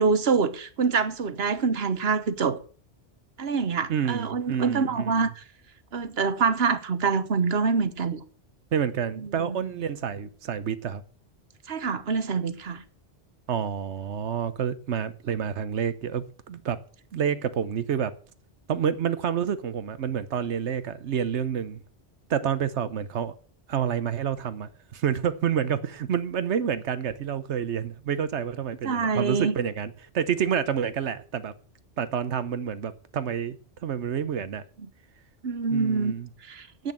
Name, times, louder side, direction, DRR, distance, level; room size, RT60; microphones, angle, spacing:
voice 1, 0.0-2.6 3.4-5.4 5.9-8.2 9.1-9.8 11.7-12.8 28.8-29.5 35.4-36.1 36.4-36.9, right 5 dB, 65° right, 1.3 m, -26 dB
voice 2, 3.9-5.3 8.7-11.0 13.5-16.8 17.1-18.1 18.7-21.8 22.3-23.3 23.7-31.5 32.0-33.6 33.8-34.6 35.7-36.3, right 8 dB, 80° right, 1.1 m, -28 dB
10.5 x 8.3 x 7.5 m
omnidirectional pair, 1.1 m